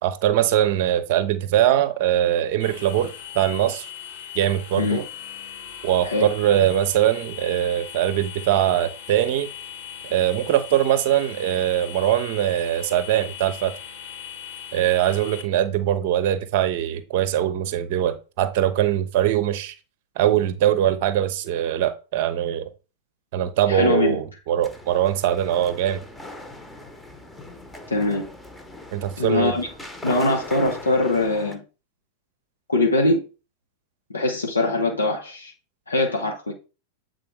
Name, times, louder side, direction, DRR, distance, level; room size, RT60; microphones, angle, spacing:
voice 1, 0.0-3.9 4.3-5.0 5.8-9.5 10.0-13.7 14.7-19.7 20.2-22.7 23.3-26.0 28.9-29.5, right 11 dB, 50° right, 0.7 m, -22 dB
sound 1, 2.6-15.4, left 9 dB, 55° left, 1.7 m, -39 dB
voice 2, 23.7-24.2 27.9-28.3 29.2-29.7 30.0-31.6 32.7-33.2 34.1-35.5 35.9-36.5, left 2 dB, 75° left, 1.0 m, -22 dB
sound 2, 24.6-31.6, left 1 dB, 5° left, 1.0 m, -40 dB
7.7 x 3.9 x 3.4 m
figure-of-eight pair, 90°, 0 cm